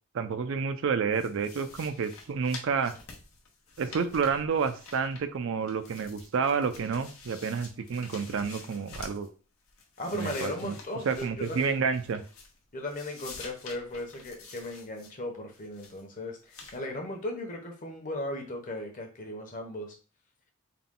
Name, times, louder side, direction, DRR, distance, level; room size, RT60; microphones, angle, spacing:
voice 1, 0.1-2.9 3.8-9.3 10.1-10.7 11.1-12.2, right 5 dB, 65° right, 10 dB, 0.4 m, -29 dB
sound 1, 1.1-5.4 5.7-9.3 9.7-12.6 12.9-15.1 15.5-16.0 16.5-16.8, left 4 dB, 80° left, 0.9 m, -48 dB
voice 2, 10.0-11.8 12.7-19.9, left 1 dB, 40° left, 2 dB, 0.9 m, -37 dB
3.8 x 2.2 x 3.7 m, 0.36 s
head